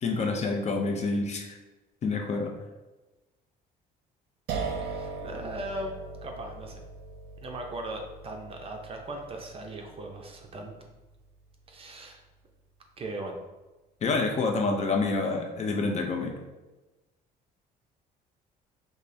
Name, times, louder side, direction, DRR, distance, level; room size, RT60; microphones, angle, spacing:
voice 1, 0.0-1.6 2.0-2.5 14.0-16.4, left 3 dB, 40° left, 3 dB, 0.6 m, -28 dB
sound 1, 4.5-11.4, right 4 dB, 75° right, 0.5 m, -39 dB
voice 2, 4.8-5.9 6.2-6.8 7.4-10.8 11.7-12.2 13.0-13.4, right 1 dB, 35° right, 2 dB, 0.6 m, -38 dB
5.3 x 2.1 x 2.7 m, 1.1 s
cardioid pair, 110°, 17 cm